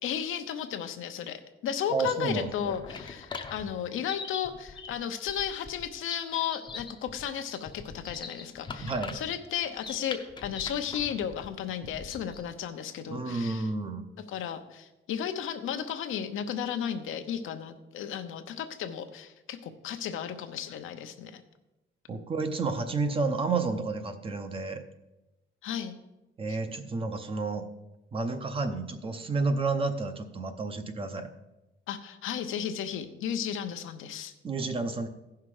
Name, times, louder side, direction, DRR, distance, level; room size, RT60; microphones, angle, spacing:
voice 1, 0.0-13.7 14.3-21.4 25.6-26.0 31.9-34.3, left 9 dB, 80° left, 7 dB, 0.9 m, -34 dB
voice 2, 1.9-2.7 8.8-9.2 13.0-14.0 22.1-24.8 26.4-27.7 28.1-31.3 34.4-35.1, right 3 dB, 25° right, 8 dB, 0.7 m, -31 dB
sound 1, 2.3-12.5, left 4 dB, 25° left, 0.7 m, -43 dB
15.5 x 5.8 x 4.8 m, 0.99 s
cardioid pair, 175°, 21 cm